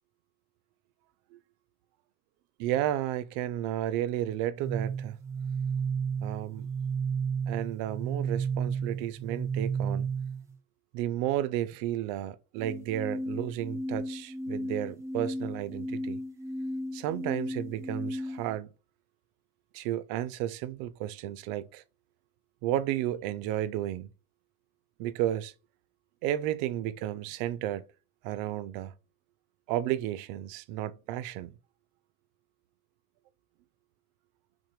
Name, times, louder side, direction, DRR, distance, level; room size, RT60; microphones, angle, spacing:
voice 1, 2.6-5.2 6.2-6.7 7.5-10.1 10.9-16.2 16.9-18.7 19.7-21.8 22.6-24.1 25.0-25.5 26.2-27.8 28.2-28.9 29.7-31.6, right 12 dB, 70° right, 0.5 m, -32 dB
sound 1, 4.6-10.5 12.6-18.6, right 4 dB, 10° right, 0.4 m, -33 dB
6.0 x 2.1 x 3.0 m
cardioid pair, 155°, 34 cm